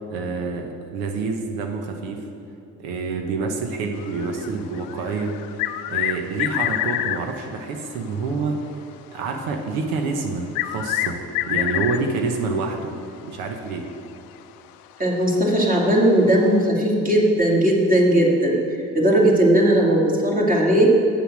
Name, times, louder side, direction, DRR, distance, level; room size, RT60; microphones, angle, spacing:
voice 1, 0.0-2.3 2.8-5.4 5.9-8.6 9.1-12.9 13.2-13.9, right 4 dB, 90° right, 3 dB, 0.9 m, -27 dB
sound 1, 4.0-7.3 9.7-9.8 10.6-12.2 13.9-14.0 14.4-14.5 16.2-16.3, left 13 dB, 80° left, 0.5 m, -26 dB
voice 2, 15.0-18.6 18.9-21.0, right 1 dB, 25° right, -2 dB, 2.3 m, -17 dB
7.9 x 7.0 x 6.0 m, 2.8 s
supercardioid pair, 80°, 35 cm